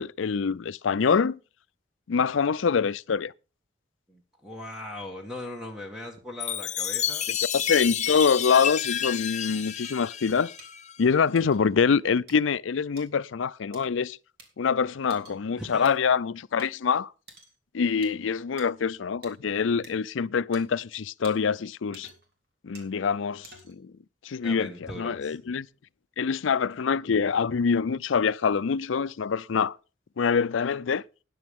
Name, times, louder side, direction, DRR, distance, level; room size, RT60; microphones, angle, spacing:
voice 1, 0.0-1.4 2.1-3.3 7.3-10.5 11.0-14.2 14.6-17.1 17.7-22.1 22.6-23.9 24.2-25.7 26.2-29.8 30.2-31.0, left 6 dB, 85° left, 0.5 m, -25 dB
voice 2, 4.1-7.2 15.6-15.9 24.4-25.4, left 1 dB, 5° right, 1.6 m, -39 dB
Chime, 6.4-11.0, left 10 dB, 35° left, 0.7 m, -30 dB
sound 1, 9.8-9.9 10.6-10.7 11.3-11.6 12.3-12.4 13.0-13.1 13.7-13.8 14.4-14.5 15.1-15.4 15.8-15.9 16.6-16.7 17.3-17.5 18.0-18.1 18.6-18.7 19.2-19.3 19.8-19.9 20.5-20.6 21.2-21.3 21.9-22.3 22.7-22.9 23.4-23.8, right 3 dB, 55° right, 3.4 m, -49 dB
13.5 x 10.0 x 3.6 m
head